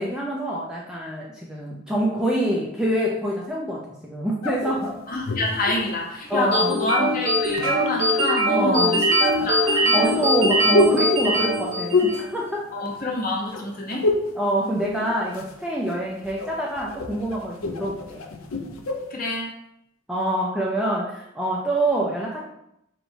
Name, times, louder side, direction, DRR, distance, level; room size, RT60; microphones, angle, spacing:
voice 1, 0.0-5.2 6.3-6.9 8.5-9.1 9.6-12.6 14.3-18.2 20.1-22.5, right 1 dB, 5° right, -4 dB, 0.3 m, -26 dB
sound 1, 4.4-6.6 7.3-8.2 9.2-13.2 13.5-14.4 14.7-15.6 15.9-19.1, left 2 dB, 80° left, 0.5 m, -27 dB
voice 2, 5.1-10.1 12.7-14.1 19.1-19.5, left 1 dB, 40° left, -1 dB, 0.8 m, -27 dB
sound 2, 6.5-12.3, right 1 dB, 60° right, 1.0 m, -21 dB
4.3 x 2.9 x 2.7 m, 0.79 s
head